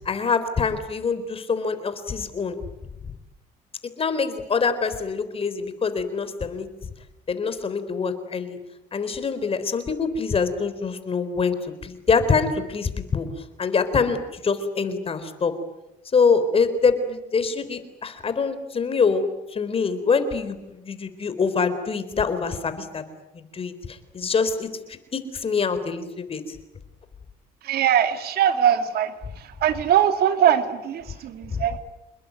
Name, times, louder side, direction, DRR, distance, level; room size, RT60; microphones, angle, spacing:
voice 1, 0.1-2.6 4.0-6.7 7.3-8.6 8.9-11.6 11.8-13.3 13.6-15.5 16.1-19.3 19.5-23.1 23.3-26.6 31.5-31.7, left 5 dB, 35° left, 11 dB, 4.0 m, -25 dB
voice 2, 27.6-29.1 29.6-31.8, right 9 dB, 65° right, 9 dB, 2.3 m, -21 dB
28.0 x 21.0 x 9.5 m, 0.95 s
cardioid pair, 110°, 17 cm